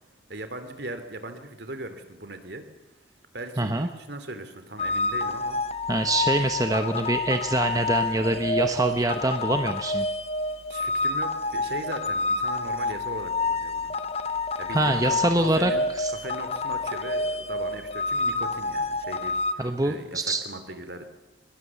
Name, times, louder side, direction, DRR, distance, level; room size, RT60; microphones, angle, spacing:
voice 1, 0.3-2.7 3.3-5.6 10.7-13.9 14.6-21.1, right 2 dB, 60° right, 9 dB, 2.9 m, -39 dB
voice 2, 3.6-3.9 5.9-10.1 14.7-16.1 19.6-20.4, right 1 dB, 20° right, 7 dB, 1.0 m, -25 dB
sound 1, 4.8-19.5, left 3 dB, 35° left, 1.0 m, -28 dB
23.0 x 21.5 x 7.2 m, 0.95 s
head